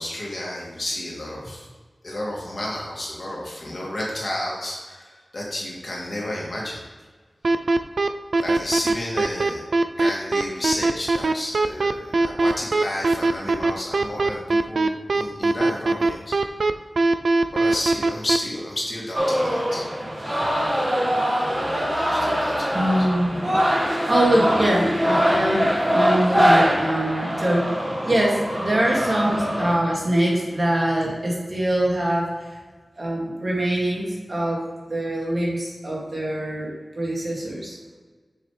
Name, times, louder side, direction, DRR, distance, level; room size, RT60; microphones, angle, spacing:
voice 1, 0.0-1.7 2.0-6.8 8.4-9.6 10.0-16.3 17.5-19.8 22.1-23.1, left 1 dB, 50° left, -4 dB, 2.1 m, -31 dB
sound 1, 7.4-18.4, right 3 dB, 80° right, 0.3 m, -20 dB
sound 2, 19.1-29.8, equal, 25° right, 1.5 m, -23 dB
voice 2, 22.7-23.4 23.9-27.8 28.1-32.5 33.0-34.6 34.9-37.8, right 1 dB, 50° right, -3 dB, 2.2 m, -23 dB
7.2 x 6.7 x 3.2 m, 1.4 s
wide cardioid pair, 85°, 0 cm